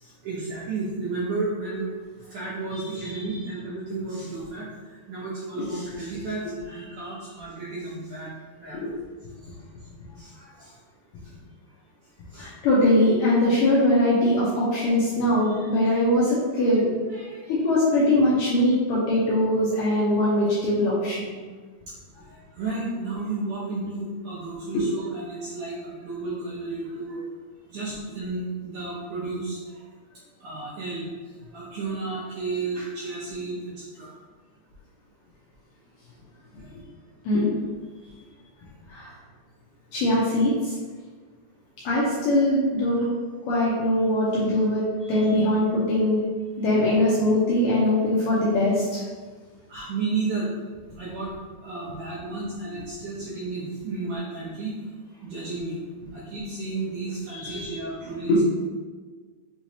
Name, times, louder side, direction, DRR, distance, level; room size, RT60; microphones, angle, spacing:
voice 1, 0.0-1.9 2.3-4.7 5.1-8.3 8.6-8.8 10.1-10.7 12.3-12.5 13.8-13.9 16.7-16.8 17.1-17.5 22.2-27.2 27.7-29.8 30.4-31.0 31.5-34.1 36.7-36.8 37.3-37.4 49.7-50.5 51.0-51.3 51.6-54.7 55.2-55.8 56.1-58.3, right 3 dB, 75° right, -9 dB, 1.9 m, -32 dB
voice 2, 12.4-16.9 17.5-21.3 24.7-24.9 37.3-37.6 38.9-39.1 39.9-40.7 41.9-43.1 43.5-46.2 46.6-48.8 57.3-57.7 58.3-58.4, left 1 dB, 75° left, -7 dB, 2.0 m, -22 dB
6.1 x 3.1 x 2.8 m, 1.4 s
omnidirectional pair, 4.5 m